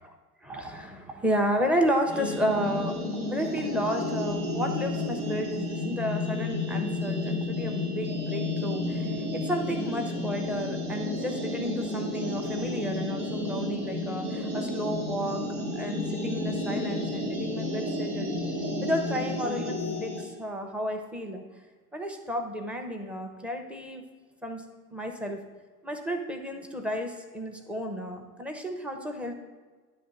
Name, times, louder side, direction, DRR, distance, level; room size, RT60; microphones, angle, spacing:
voice 1, 0.4-3.0 3.3-15.4 15.7-18.4 18.8-21.4 21.9-24.0 24.4-24.6 24.9-25.4 25.8-29.3, equal, 5° right, 3 dB, 0.7 m, -32 dB
sound 1, 2.1-20.3, left 2 dB, 90° right, 1.7 m, -31 dB
9.6 x 3.2 x 5.3 m, 1.4 s
hypercardioid pair, 100°, 46 cm